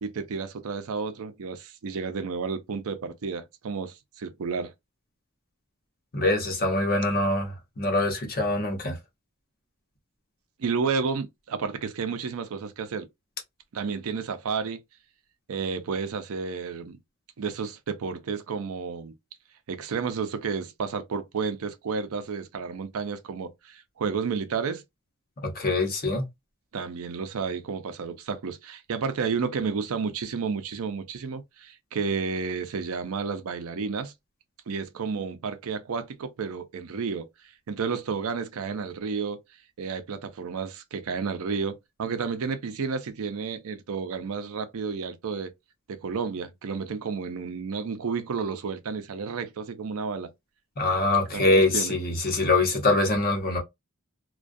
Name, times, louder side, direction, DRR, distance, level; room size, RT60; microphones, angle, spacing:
voice 1, 0.0-4.7 10.6-13.1 13.7-14.8 15.5-17.0 17.4-19.1 19.7-24.8 26.7-34.1 34.7-37.3 37.7-39.4 39.8-45.5 45.9-50.3 51.3-52.0, right 5 dB, 70° right, 0.5 m, -31 dB
voice 2, 6.1-9.0 25.4-26.2 50.8-53.6, left 2 dB, 45° left, 0.9 m, -24 dB
2.3 x 2.2 x 2.5 m
head